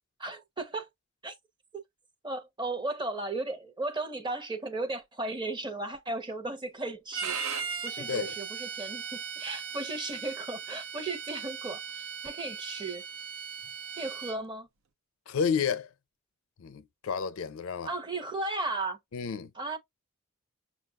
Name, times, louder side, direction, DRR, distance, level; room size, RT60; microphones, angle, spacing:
voice 1, 0.2-0.9 1.2-1.3 2.2-7.4 7.8-13.0 14.0-14.7 17.8-19.0 19.6-19.8, right 2 dB, 20° right, 0.8 m, -35 dB
Bowed string instrument, 7.1-14.4, right 7 dB, 80° right, 0.7 m, -38 dB
voice 2, 8.0-8.3 15.3-15.9 16.6-17.9 19.1-19.5, left 6 dB, 80° left, 0.5 m, -31 dB
6.1 x 2.3 x 2.3 m
head